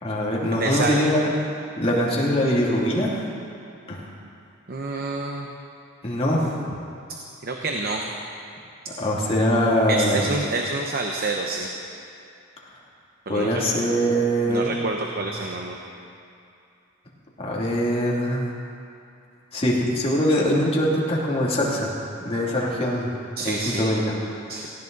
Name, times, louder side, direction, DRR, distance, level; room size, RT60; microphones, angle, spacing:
voice 1, 0.0-1.3 1.8-3.3 3.9-4.0 6.0-6.6 9.0-10.3 13.3-14.7 17.4-18.4 19.5-21.9 22.2-23.1 23.4-24.0 24.3-24.4, equal, 30° left, -5 dB, 2.7 m, -22 dB
voice 2, 0.6-1.0 4.7-5.5 7.4-8.0 9.9-11.7 13.3-13.6 14.5-15.8 23.4-23.9 24.5-24.7, right 3 dB, 45° right, 1 dB, 0.9 m, -27 dB
18.5 x 16.0 x 4.0 m, 2.6 s
head